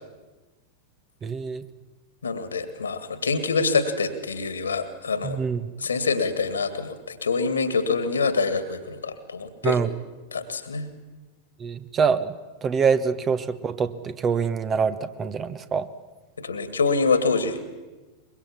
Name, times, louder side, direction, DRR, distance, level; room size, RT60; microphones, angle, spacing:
voice 1, 1.2-1.6 5.2-5.6 9.6-9.9 11.6-12.3 12.6-15.9, right 6 dB, 25° right, 13 dB, 1.2 m, -25 dB
voice 2, 2.2-5.4 5.8-9.8 10.3-10.9 16.4-17.6, left 4 dB, 70° left, 12 dB, 2.2 m, -25 dB
23.5 x 22.5 x 7.3 m, 1.2 s
figure-of-eight pair, 90°, 0 cm